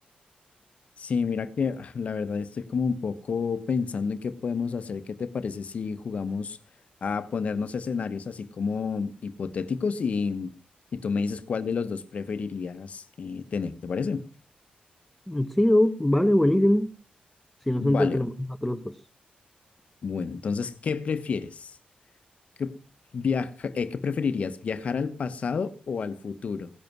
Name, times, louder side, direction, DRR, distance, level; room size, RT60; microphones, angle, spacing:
voice 1, 1.0-6.6 7.0-10.5 10.9-14.2 17.8-18.2 20.0-21.7 22.6-22.8 23.1-26.7, left 5 dB, 50° left, 1.2 m, -30 dB
voice 2, 15.3-16.9 17.7-18.9, left 1 dB, 5° left, 1.0 m, -22 dB
17.0 x 11.0 x 6.1 m
wide cardioid pair, 150°, 3 cm